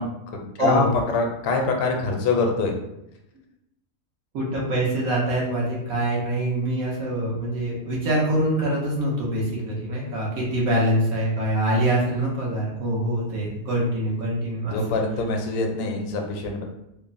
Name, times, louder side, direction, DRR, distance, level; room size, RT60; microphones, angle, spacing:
voice 1, 0.0-2.7 14.7-16.6, left 3 dB, 75° left, 2 dB, 0.9 m, -24 dB
voice 2, 0.6-0.9 4.3-14.8, right 1 dB, 80° right, -5 dB, 1.3 m, -24 dB
3.1 x 2.1 x 2.4 m, 0.84 s
omnidirectional pair, 1.5 m